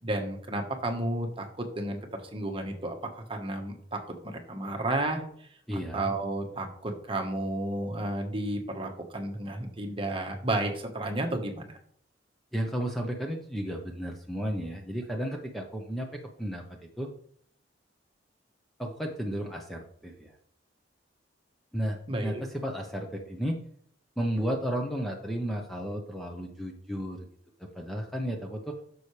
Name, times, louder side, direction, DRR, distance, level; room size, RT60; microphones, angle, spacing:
voice 1, 0.0-4.0 4.2-5.5 5.9-11.7 22.1-22.4, right 1 dB, 30° right, 3 dB, 1.4 m, -32 dB
voice 2, 5.7-6.1 12.5-17.1 18.8-20.4 21.7-23.6 24.2-27.3 27.7-28.8, equal, ahead, 1 dB, 0.9 m, -33 dB
10.5 x 6.9 x 3.3 m, 0.62 s
head